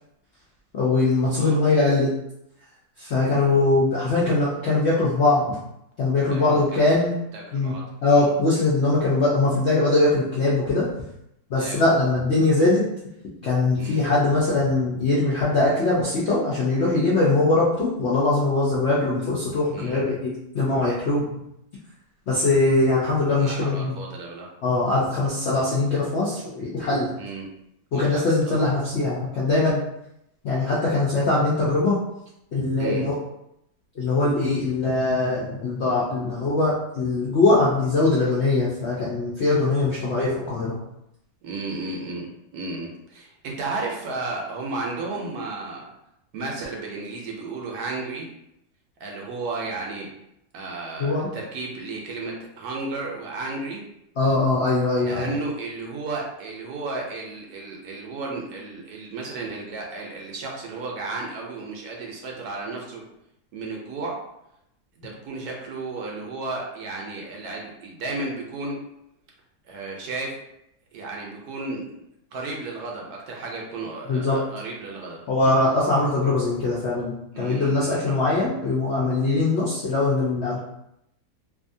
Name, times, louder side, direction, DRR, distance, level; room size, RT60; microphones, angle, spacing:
voice 1, 0.7-2.1 3.0-5.6 6.0-7.1 7.5-7.7 8.0-10.9 11.5-12.8 13.4-21.3 22.3-23.9 24.6-27.1 27.9-29.8 30.4-32.0 32.5-33.1 34.0-40.8 51.0-51.3 54.2-55.3 74.1-74.4 75.3-80.6, left 2 dB, 70° left, -7 dB, 0.6 m, -21 dB
voice 2, 1.4-2.0 3.2-3.5 6.3-6.8 7.3-7.8 8.1-8.3 11.5-11.9 13.8-14.1 19.7-20.0 23.4-24.5 27.2-27.5 27.9-28.6 32.8-33.1 41.4-45.9 46.3-48.3 49.0-50.1 50.5-53.8 55.0-63.0 63.5-64.3 65.0-68.8 69.7-70.4 70.9-72.0 72.3-75.5 77.3-78.2, right 3 dB, 75° right, -1 dB, 1.1 m, -33 dB
2.7 x 2.5 x 2.6 m, 0.81 s
omnidirectional pair, 1.8 m